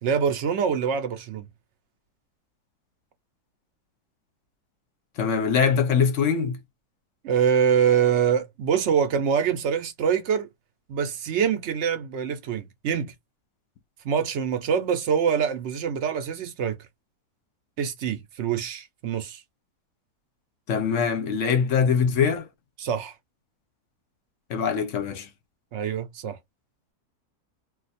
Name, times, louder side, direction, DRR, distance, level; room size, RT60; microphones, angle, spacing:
voice 1, 0.0-1.4 7.2-10.5 10.9-13.1 14.0-16.8 17.8-19.4 22.8-23.1 25.7-26.4, right 7 dB, 60° right, 0.8 m, -25 dB
voice 2, 5.2-6.6 20.7-22.5 24.5-25.3, left 6 dB, 65° left, 0.9 m, -23 dB
2.5 x 2.3 x 4.0 m
omnidirectional pair, 1.6 m